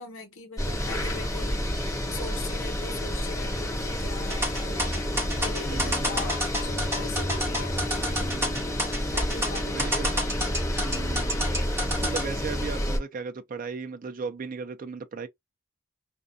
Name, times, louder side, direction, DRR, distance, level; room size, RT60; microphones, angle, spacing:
voice 1, 0.0-8.3 9.1-10.3, left 4 dB, 70° left, 1.1 m, -41 dB
sound 1, 0.6-13.0, equal, 15° left, 0.9 m, -29 dB
sound 2, 4.3-12.2, equal, 10° right, 1.0 m, -29 dB
voice 2, 5.6-6.2 8.2-8.8 9.7-10.1 10.8-11.4 11.7-15.3, right 4 dB, 40° right, 0.4 m, -37 dB
2.4 x 2.2 x 2.5 m
head